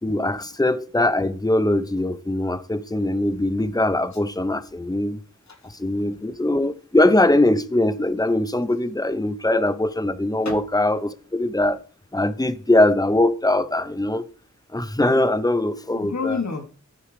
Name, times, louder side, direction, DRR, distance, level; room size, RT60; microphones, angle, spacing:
voice 1, 0.0-5.2 5.8-11.8 12.1-14.2 14.7-16.4, left 1 dB, 10° left, 0.8 m, -21 dB
voice 2, 5.5-6.4 10.4-10.6 15.9-16.7, left 5 dB, 60° left, 1.5 m, -31 dB
13.0 x 4.7 x 5.0 m
wide cardioid pair, 45°, 31 cm